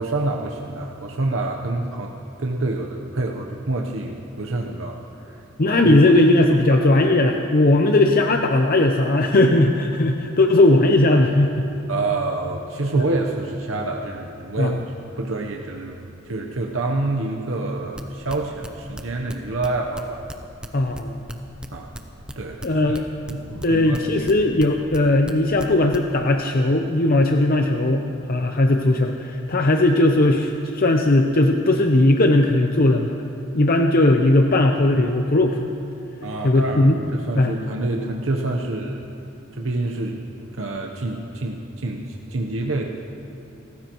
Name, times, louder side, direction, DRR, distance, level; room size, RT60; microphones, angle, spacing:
voice 1, 0.0-2.1 2.4-5.4 5.8-5.9 6.7-6.8 11.9-14.7 15.2-20.2 21.7-21.9 22.3-23.0 23.3-24.2 36.2-39.0 39.5-40.2 40.5-42.9, right 2 dB, 75° right, 1 dB, 0.9 m, -27 dB
voice 2, 5.6-11.7 12.9-13.0 14.6-14.8 20.7-21.3 22.6-23.0 23.6-33.2 33.5-35.6 36.4-37.0 37.4-37.5, left 2 dB, 45° left, 4 dB, 0.7 m, -18 dB
sound 1, 17.9-23.7 23.9-25.3 25.6-26.0, equal, 5° right, 0.7 m, -35 dB
29.5 x 15.0 x 3.1 m, 2.7 s
head